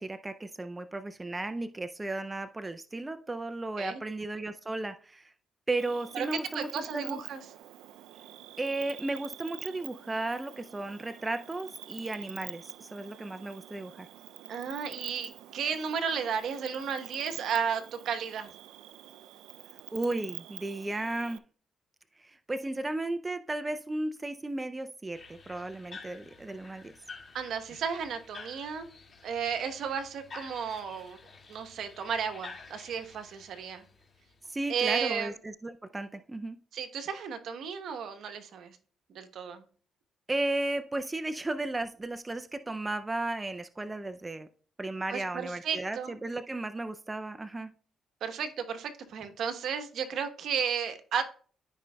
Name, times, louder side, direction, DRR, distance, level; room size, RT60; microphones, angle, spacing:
voice 1, 0.0-5.3 5.7-7.2 8.6-14.1 19.9-21.4 22.2-26.9 34.5-36.6 40.3-44.5 44.8-47.7, right 2 dB, 20° right, 10 dB, 0.4 m, -34 dB
Cricket, 5.8-21.4, right 13 dB, 90° right, 0.4 m, -47 dB
voice 2, 6.1-7.4 14.5-18.5 27.3-28.8 29.2-31.2 31.5-33.8 34.7-35.3 36.7-38.8 39.1-39.6 45.1-46.1 48.2-51.2, right 7 dB, 70° right, 8 dB, 1.0 m, -33 dB
sound 1, 25.1-34.8, left 4 dB, 40° left, 2.0 m, -50 dB
13.0 x 5.1 x 2.2 m, 0.44 s
cardioid pair, 90°, 0 cm